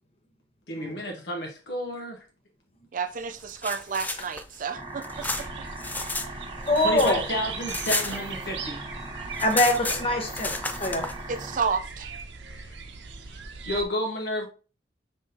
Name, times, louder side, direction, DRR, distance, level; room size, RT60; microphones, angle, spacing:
voice 1, 0.7-2.2 6.0-6.1 6.8-8.8 12.6-12.7 13.6-14.5, equal, 70° left, 1 dB, 0.8 m, -31 dB
voice 2, 2.9-5.3 11.3-12.1, right 5 dB, 50° right, 10 dB, 0.5 m, -31 dB
sound 1, 3.4-6.3 6.6-8.7 9.0-9.1 9.3-11.1, left 2 dB, 10° left, 0.4 m, -32 dB
sound 2, 4.7-11.6, right 2 dB, 25° right, 1.2 m, -39 dB
sound 3, 5.1-13.8, right 5 dB, 80° right, 0.7 m, -39 dB
voice 3, 6.7-7.2 9.4-10.5 10.8-11.1, left 1 dB, 35° left, 3 dB, 0.9 m, -23 dB
5.3 x 3.6 x 2.7 m, 0.35 s
head